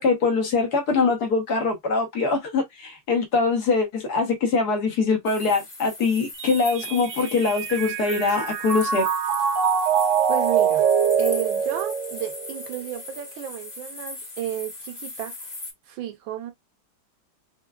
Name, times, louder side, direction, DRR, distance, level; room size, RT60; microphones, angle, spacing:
voice 1, 0.0-9.1, left 4 dB, 60° left, 1.4 m, -23 dB
sound 1, 5.2-15.7, left 2 dB, 35° left, 1.2 m, -39 dB
Mallet percussion, 6.4-12.8, right 7 dB, 60° right, 0.8 m, -24 dB
voice 2, 10.3-10.9 11.2-15.5 15.9-16.5, right 11 dB, 90° right, 1.6 m, -33 dB
5.6 x 2.2 x 2.3 m
omnidirectional pair, 2.0 m